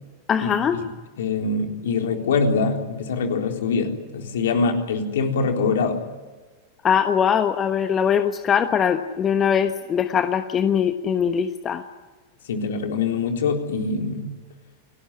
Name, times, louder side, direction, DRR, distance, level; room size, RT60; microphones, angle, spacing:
voice 1, 0.3-0.8 6.8-11.8, left 8 dB, 25° left, 9 dB, 1.2 m, -21 dB
voice 2, 1.2-6.0 12.5-14.3, left 4 dB, 60° left, 3 dB, 3.9 m, -24 dB
29.5 x 19.0 x 9.9 m, 1.3 s
figure-of-eight pair, 90°, 0 cm